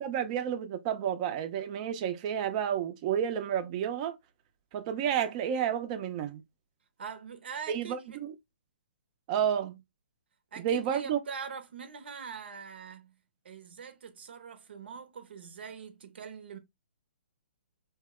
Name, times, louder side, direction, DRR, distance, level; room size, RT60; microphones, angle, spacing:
voice 1, 0.0-4.1 4.7-6.4 7.7-8.3 9.3-9.8 10.6-11.2, right 9 dB, 35° right, 0.6 m, -31 dB
voice 2, 7.0-8.2 10.5-13.1 13.4-16.6, right 6 dB, 70° right, 0.8 m, -43 dB
2.8 x 2.1 x 3.6 m
hypercardioid pair, 135°, 6 cm